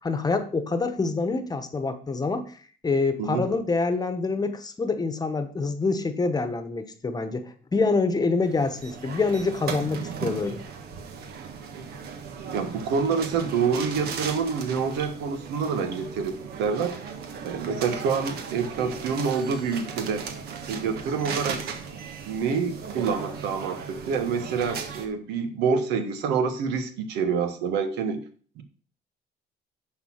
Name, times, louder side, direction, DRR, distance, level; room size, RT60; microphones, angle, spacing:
voice 1, 0.0-2.5 2.8-10.6, left 3 dB, 25° left, 9 dB, 1.1 m, -26 dB
sound 1, 8.4-25.1, right 6 dB, 70° right, 1.5 m, -37 dB
voice 2, 12.5-16.9 17.4-20.3 20.7-21.6 22.3-28.2 28.6-28.7, right 5 dB, 85° right, 8 dB, 1.4 m, -27 dB
10.5 x 4.2 x 5.8 m, 0.43 s
cardioid pair, 110°, 17 cm